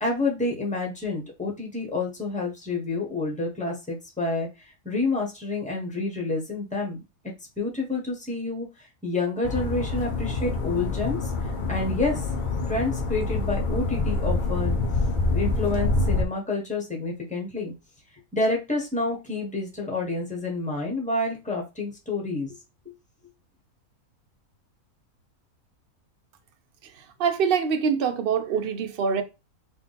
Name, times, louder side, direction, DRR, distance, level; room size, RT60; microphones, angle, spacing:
voice 1, 0.0-7.0 7.6-12.3 12.7-14.8 15.3-17.7 18.3-22.5, left 3 dB, 5° left, 1.1 m, -29 dB
sound 1, 9.4-16.2, left 2 dB, 55° left, 0.5 m, -26 dB
voice 2, 26.9-29.2, right 6 dB, 55° right, 0.6 m, -25 dB
3.7 x 2.7 x 4.0 m
omnidirectional pair, 1.6 m